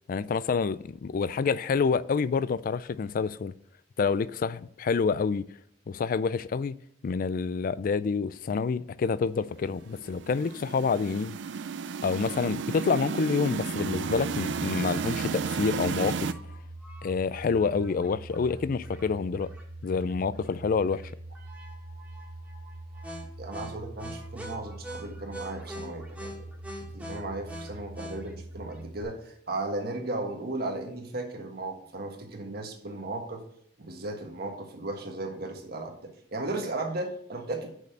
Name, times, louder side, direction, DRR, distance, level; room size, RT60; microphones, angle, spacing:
voice 1, 0.1-3.5 4.0-5.5 5.9-6.8 7.0-11.4 12.0-16.3 17.0-19.5 19.8-21.1, left 5 dB, 50° left, 0.3 m, -28 dB
sound 1, 9.9-16.3, right 5 dB, 70° right, 0.4 m, -33 dB
sound 2, 13.7-29.0, right 1 dB, 10° right, 1.7 m, -42 dB
voice 2, 23.4-26.5 26.8-33.4 33.8-37.7, right 2 dB, 55° right, 1.5 m, -36 dB
6.5 x 5.3 x 6.5 m
head